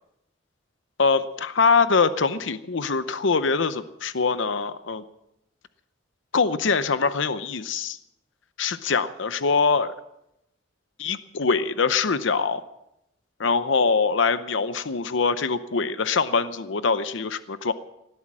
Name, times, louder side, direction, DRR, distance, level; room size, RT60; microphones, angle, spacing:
voice 1, 1.0-5.0 6.3-8.0 8.6-9.9 11.0-12.6 13.4-17.7, left 4 dB, 70° left, 13 dB, 0.7 m, -23 dB
18.5 x 12.5 x 6.1 m, 0.85 s
head